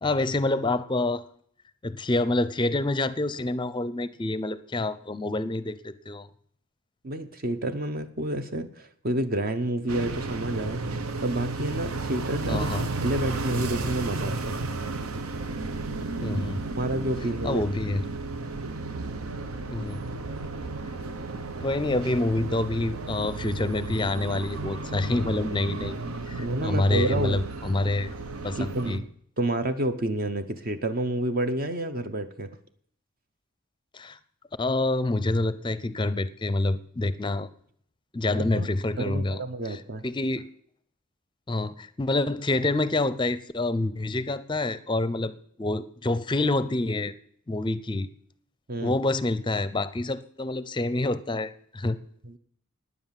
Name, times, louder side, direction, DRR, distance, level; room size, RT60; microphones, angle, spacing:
voice 1, 0.0-1.2 1.8-6.3 12.5-12.9 16.2-16.6 17.4-18.0 19.7-20.0 21.6-26.0 26.3-28.1 28.4-29.0 33.9-34.2 34.6-37.5 38.1-39.4 39.7-40.5 41.5-45.3 45.6-47.1 47.5-48.1 48.8-52.0, left 2 dB, 20° left, 15 dB, 0.5 m, -27 dB
voice 2, 7.0-10.8 11.2-14.6 16.8-17.6 26.4-27.4 28.6-29.0 29.4-32.5 38.3-38.7 39.0-40.0 48.7-49.0 52.2-52.4, right 1 dB, 45° right, 9 dB, 0.7 m, -29 dB
sound 1, 9.9-29.0, right 3 dB, 85° right, 0.9 m, -33 dB
9.7 x 9.5 x 7.3 m, 0.63 s
head